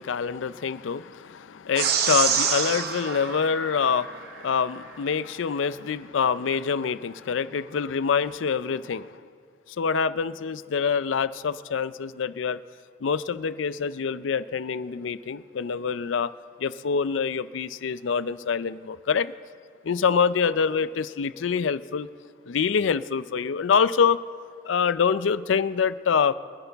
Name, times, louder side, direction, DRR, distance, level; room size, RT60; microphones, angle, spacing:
voice 1, 0.0-9.1 9.8-12.6 13.0-16.3 16.6-19.3 19.8-22.1 22.5-24.2 24.6-26.3, left 6 dB, 75° left, 15 dB, 0.4 m, -25 dB
sound 1, 1.8-4.4, right 6 dB, 50° right, 0.8 m, -27 dB
25.0 x 9.7 x 3.5 m, 2.1 s
head